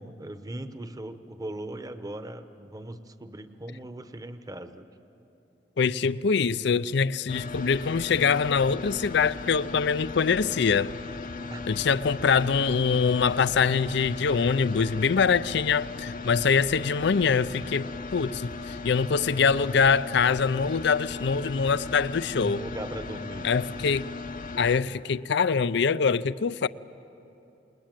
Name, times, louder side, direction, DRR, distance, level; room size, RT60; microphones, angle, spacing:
voice 1, 0.0-4.9 11.5-11.7 22.4-23.5, right 1 dB, 20° right, 1.0 m, -39 dB
voice 2, 5.8-10.9 11.7-22.6 23.4-24.1 24.6-26.7, left 5 dB, 70° left, 0.5 m, -24 dB
sound 1, 7.3-24.8, left 3 dB, 50° left, 0.8 m, -37 dB
28.5 x 20.5 x 9.0 m
head